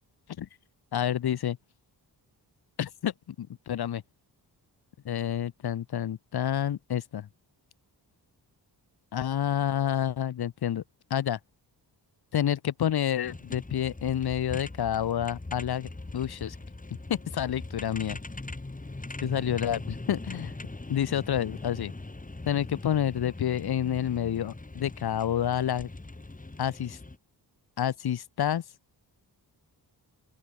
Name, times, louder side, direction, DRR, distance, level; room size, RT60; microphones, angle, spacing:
voice 1, 0.9-1.6 2.8-3.1 3.4-4.0 5.0-7.3 9.1-10.8 11.1-11.4 12.3-16.6 17.1-18.2 19.2-19.8 20.1-20.5 20.9-21.9 22.4-25.9 26.6-27.0 27.8-28.6, left 10 dB, 60° left, 0.9 m, -29 dB
sound 1, 13.2-27.2, left 2 dB, 20° left, 4.0 m, -41 dB
open air
wide cardioid pair, 100°, 42 cm